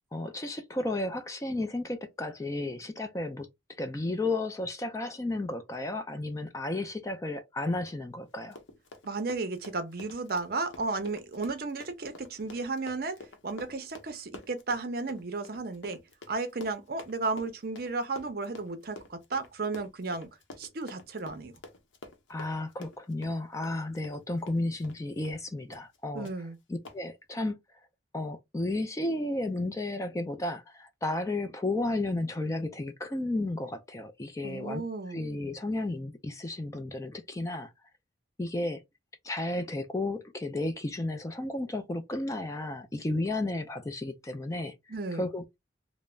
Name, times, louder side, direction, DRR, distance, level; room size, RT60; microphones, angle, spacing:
voice 1, 0.1-3.5 3.8-8.6 22.3-26.3 26.7-27.6 28.1-34.8 35.1-37.7 38.4-38.8 39.2-44.7 45.1-45.6, left 2 dB, 15° left, 0.3 m, -33 dB
Run, 8.4-25.0 25.2-25.4 25.7-26.0 26.2-26.4 26.8-27.0, left 2 dB, 85° left, 0.7 m, -49 dB
voice 2, 9.0-13.2 13.4-16.0 16.3-20.3 20.6-21.5 26.1-26.6 34.4-35.2 44.9-45.3, right 3 dB, 50° right, 0.6 m, -34 dB
3.2 x 2.0 x 2.3 m
head